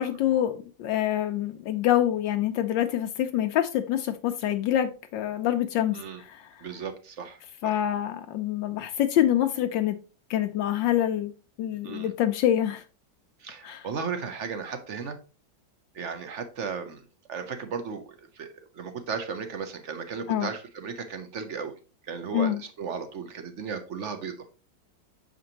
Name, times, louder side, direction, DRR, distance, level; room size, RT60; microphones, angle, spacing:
voice 1, 0.0-6.4 7.6-10.0 10.3-11.3 11.6-12.8 13.6-13.9 20.3-20.5 22.3-22.6, left 11 dB, 75° left, 7 dB, 1.2 m, -26 dB
voice 2, 6.6-7.8 11.8-12.1 13.4-15.2 15.9-21.7 22.0-24.3, right 6 dB, 55° right, 8 dB, 0.8 m, -35 dB
6.6 x 5.1 x 2.9 m, 0.34 s
omnidirectional pair, 2.1 m